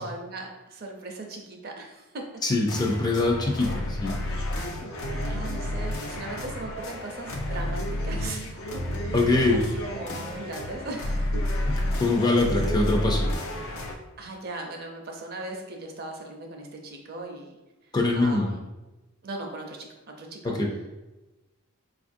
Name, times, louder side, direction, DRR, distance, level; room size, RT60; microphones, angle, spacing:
voice 1, 0.0-2.2 2.8-2.9 5.2-8.5 9.1-9.2 9.5-9.6 9.9-11.3 14.2-17.6 18.2-18.7 19.2-20.5, right 2 dB, 50° right, 2 dB, 0.5 m, -38 dB
voice 2, 2.4-4.2 9.1-9.6 12.0-13.3 17.9-18.5 20.4-20.7, left 2 dB, 20° left, 1 dB, 0.3 m, -23 dB
sound 1, 2.7-13.9, left 1 dB, 85° left, 0.5 m, -30 dB
4.1 x 2.4 x 2.5 m, 1.1 s
head